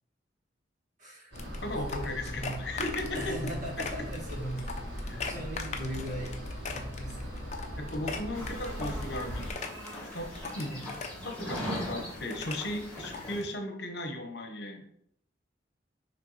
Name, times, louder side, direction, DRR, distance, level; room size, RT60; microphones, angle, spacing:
voice 1, 1.0-1.4 1.9-2.5 3.1-4.7 5.0-6.4 6.7-7.4 10.7-10.9, right 1 dB, 45° right, -2 dB, 1.8 m, -39 dB
sound 1, 1.3-9.5, equal, 80° right, 1.9 m, -39 dB
sound 2, 1.4-13.5, left 4 dB, 40° left, 0.7 m, -41 dB
voice 2, 1.6-3.4 5.0-5.2 7.8-9.5 10.1-10.3 10.5-10.7 11.2-14.8, left 1 dB, 65° left, 5 dB, 1.0 m, -36 dB
sound 3, 8.3-13.4, equal, 5° left, 2.3 m, -40 dB
6.8 x 3.2 x 4.9 m, 0.71 s
head